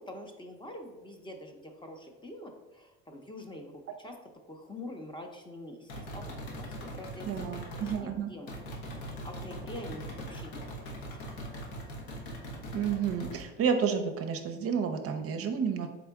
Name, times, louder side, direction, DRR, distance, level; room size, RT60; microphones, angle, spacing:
voice 1, 0.0-4.2 4.5-8.5 8.9-11.4, left 1 dB, 15° left, 3 dB, 0.6 m, -46 dB
sound 1, 5.9-8.0 8.5-13.4, equal, 85° left, 1.0 m, -41 dB
voice 2, 7.3-8.3 12.7-15.9, right 7 dB, 45° right, 6 dB, 0.5 m, -30 dB
3.8 x 3.5 x 3.5 m, 1.1 s
supercardioid pair, 90°, 32 cm